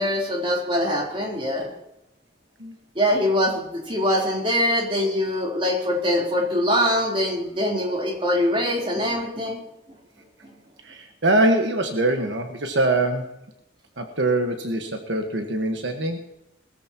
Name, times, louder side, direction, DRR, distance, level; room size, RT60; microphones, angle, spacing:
voice 1, 0.0-1.7 3.0-9.6, equal, 30° right, -1 dB, 3.6 m, -23 dB
voice 2, 10.8-13.4 14.0-16.2, right 2 dB, 80° right, 4 dB, 1.5 m, -23 dB
21.0 x 14.0 x 3.0 m, 0.85 s
head